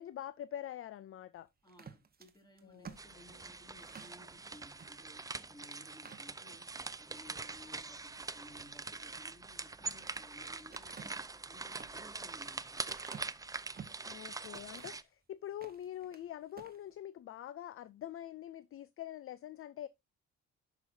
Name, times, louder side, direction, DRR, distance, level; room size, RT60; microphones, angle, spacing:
voice 1, 0.0-1.5 2.6-2.9 14.1-19.9, left 11 dB, 45° left, 0.4 m, -45 dB
voice 2, 1.6-6.7 7.0-12.8, left 1 dB, 15° left, 2.6 m, -59 dB
sound 1, 1.7-4.2 4.7-4.9 5.3-5.4 5.9-6.8 7.3-7.7 9.5-10.3 10.7-14.1 14.5-15.1 15.5-16.2 16.5-16.8, right 6 dB, 30° right, 1.2 m, -53 dB
sound 2, 3.0-15.0, right 3 dB, 10° right, 0.4 m, -44 dB
10.5 x 6.1 x 2.7 m
cardioid pair, 90°, 30 cm